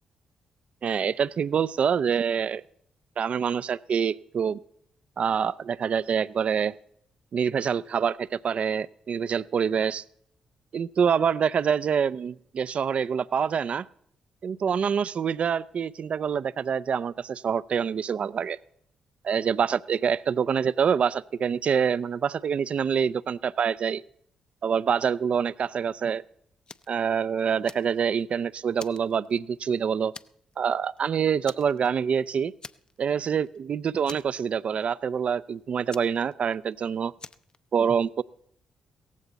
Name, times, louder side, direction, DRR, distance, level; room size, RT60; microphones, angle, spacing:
voice 1, 0.8-2.6 3.2-4.6 5.2-6.7 7.3-10.0 10.7-13.9 14.4-18.6 19.2-24.0 24.6-26.2 26.9-30.1 30.6-32.5 33.0-37.1 37.7-38.2, right 7 dB, 55° right, 19 dB, 0.4 m, -26 dB
Fire, 26.7-27.0 27.4-28.3 28.8-29.7 30.1-30.5 30.8-31.0 31.4-32.2 32.6-33.2 33.4-33.6 34.0-34.8 35.9-36.7 37.2-37.6, left 4 dB, 40° left, 0.6 m, -45 dB
17.0 x 15.0 x 4.0 m, 0.69 s
hypercardioid pair, 45°, 2 cm